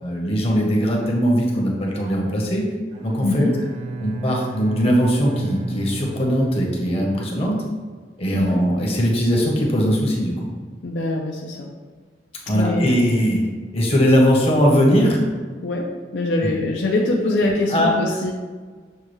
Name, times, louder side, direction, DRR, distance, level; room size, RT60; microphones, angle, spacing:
voice 1, 0.0-2.7 3.0-3.5 4.0-7.5 8.2-10.5 12.5-13.4 13.7-15.2 17.7-17.9, equal, 35° left, -1 dB, 0.8 m, -20 dB
Bowed string instrument, 2.9-7.6, right 3 dB, 40° right, 0.5 m, -33 dB
voice 2, 3.2-3.6 8.3-8.6 10.8-11.7 12.5-13.1 15.6-18.3, left 2 dB, 85° left, -2 dB, 0.5 m, -23 dB
6.5 x 2.3 x 3.1 m, 1.5 s
head